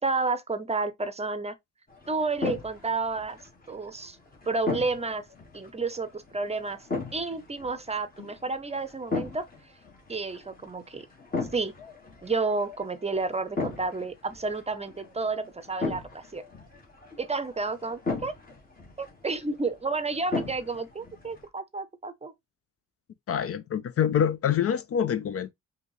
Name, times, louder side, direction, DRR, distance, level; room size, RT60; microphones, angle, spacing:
voice 1, 0.0-1.5 2.1-3.4 3.7-4.2 4.5-5.3 5.5-6.9 7.1-9.4 10.1-11.1 11.5-11.7 12.2-16.4 17.2-18.3 19.0-22.3, right 3 dB, 20° right, 0.6 m, -31 dB
sound 1, 1.9-21.5, left 3 dB, 30° left, 1.6 m, -38 dB
voice 2, 23.3-25.5, left 8 dB, 50° left, 0.4 m, -26 dB
5.1 x 2.8 x 3.1 m
cardioid pair, 85°, 30 cm